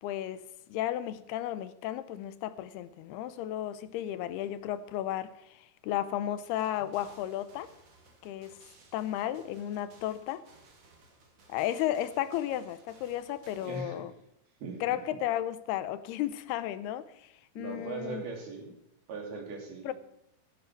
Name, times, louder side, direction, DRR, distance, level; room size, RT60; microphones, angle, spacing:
voice 1, 0.0-7.7 8.2-8.6 8.9-10.4 11.5-14.1 14.8-18.3 19.8-19.9, left 12 dB, 85° left, 2.8 m, -34 dB
sound 1, 6.4-13.8, right 3 dB, 45° right, 3.1 m, -59 dB
voice 2, 13.5-14.0 14.6-14.8 17.6-18.7 19.1-19.9, right 4 dB, 75° right, 5.0 m, -39 dB
17.0 x 12.5 x 4.6 m
omnidirectional pair, 4.5 m